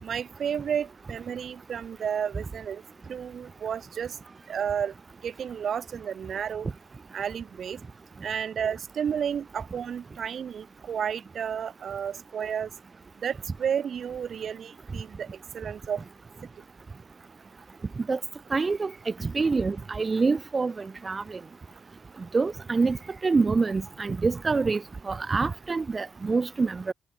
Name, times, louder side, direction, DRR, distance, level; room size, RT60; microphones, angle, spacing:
voice 1, 0.0-4.2 4.5-4.9 5.2-6.7 7.1-7.8 8.2-12.7 13.2-16.0, right 8 dB, 55° right, 2.7 m, -32 dB
voice 2, 18.5-18.9 19.2-21.4 22.3-23.0 23.2-26.9, right 4 dB, 30° right, 2.6 m, -26 dB
cardioid pair, 90°, 0 cm